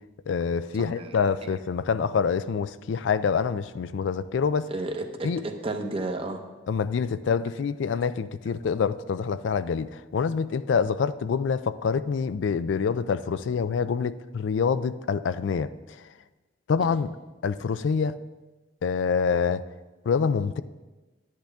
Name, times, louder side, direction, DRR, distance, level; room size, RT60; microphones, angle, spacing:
voice 1, 0.3-4.7 5.2-5.4 6.7-15.7 16.7-17.1 17.4-18.2 18.8-19.6 20.1-20.6, left 6 dB, 75° left, 14 dB, 0.4 m, -26 dB
voice 2, 0.8-1.2 4.7-6.4 16.8-16.9, right 2 dB, 30° right, 5 dB, 0.9 m, -32 dB
11.5 x 10.0 x 3.5 m, 1.2 s
head